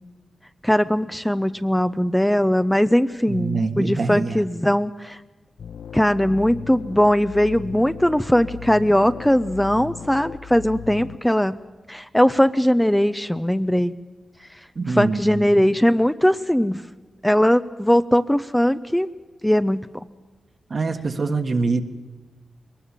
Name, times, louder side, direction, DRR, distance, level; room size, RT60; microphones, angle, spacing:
voice 1, 0.6-5.2 5.9-11.6 11.9-13.9 15.0-16.8 17.2-19.1 19.4-19.9, equal, 5° left, 11 dB, 0.6 m, -20 dB
voice 2, 3.3-4.4 14.7-15.6 20.7-21.8, right 3 dB, 50° right, 7 dB, 1.5 m, -24 dB
sound 1, 5.6-11.2, left 9 dB, 80° left, 0.6 m, -38 dB
21.5 x 19.0 x 7.3 m, 1.3 s
cardioid pair, 75°, 0 cm